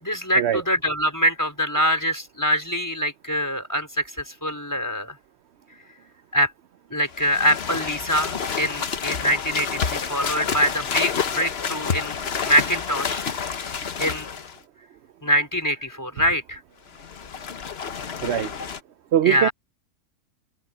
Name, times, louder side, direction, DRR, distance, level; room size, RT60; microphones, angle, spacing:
voice 1, 0.0-5.2 6.3-6.5 6.9-12.2 12.4-13.2 14.0-14.3 15.2-16.6 19.2-19.5, equal, 10° left, 4.4 m, -24 dB
sound 1, 7.1-14.6 16.9-18.8, left 6 dB, 45° left, 1.2 m, -29 dB
voice 2, 19.1-19.5, right 11 dB, 60° right, 0.7 m, -21 dB
omnidirectional pair, 1.6 m